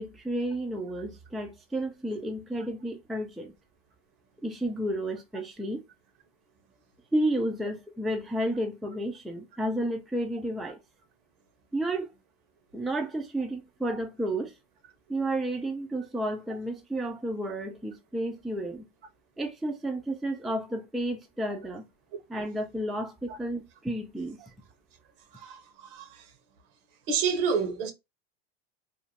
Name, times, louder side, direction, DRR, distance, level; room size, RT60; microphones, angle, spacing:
voice 1, 0.0-3.5 4.4-5.8 7.1-10.8 11.7-12.1 12.7-14.5 15.1-18.8 19.4-21.9 22.3-24.4, right 1 dB, ahead, 0.3 m, -31 dB
voice 2, 25.3-26.2 27.1-27.9, right 6 dB, 70° right, 0.9 m, -29 dB
2.6 x 2.0 x 2.9 m
supercardioid pair, 100°, 31 cm